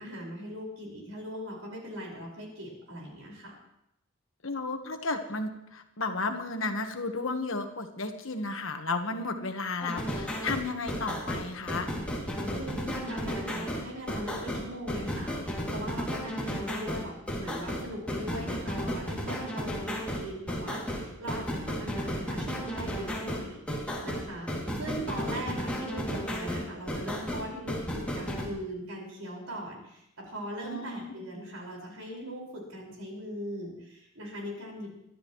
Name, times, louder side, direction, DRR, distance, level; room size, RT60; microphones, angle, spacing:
voice 1, 0.0-3.5 12.5-24.5 24.8-35.0, equal, 85° right, -2 dB, 5.3 m, -40 dB
voice 2, 4.4-11.9 30.6-31.1, left 3 dB, 65° left, 6 dB, 1.4 m, -33 dB
sound 1, 9.8-28.5, equal, 5° left, 2.6 m, -33 dB
22.5 x 12.5 x 3.2 m, 0.82 s
head